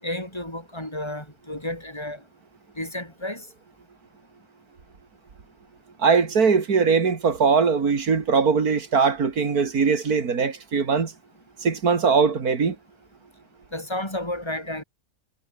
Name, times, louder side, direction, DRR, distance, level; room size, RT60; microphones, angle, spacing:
voice 1, 0.0-2.2 2.8-3.4 13.7-14.8, left 1 dB, 15° left, 7.3 m, -32 dB
voice 2, 6.0-11.1 11.6-12.8, right 5 dB, 80° right, 2.8 m, -21 dB
omnidirectional pair, 1.6 m